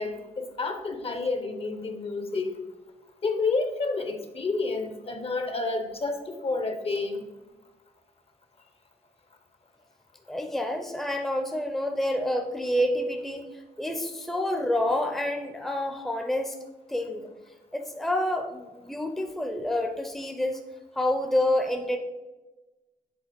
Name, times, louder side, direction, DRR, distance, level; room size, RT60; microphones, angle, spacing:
voice 1, 0.0-2.5 3.2-7.3, left 3 dB, 45° left, 7 dB, 0.8 m, -29 dB
voice 2, 10.3-13.4 13.8-16.6 16.9-17.3 17.7-20.6 21.0-22.0, left 1 dB, ahead, 4 dB, 0.6 m, -28 dB
7.9 x 3.3 x 5.2 m, 1.1 s
cardioid pair, 100°, 14 cm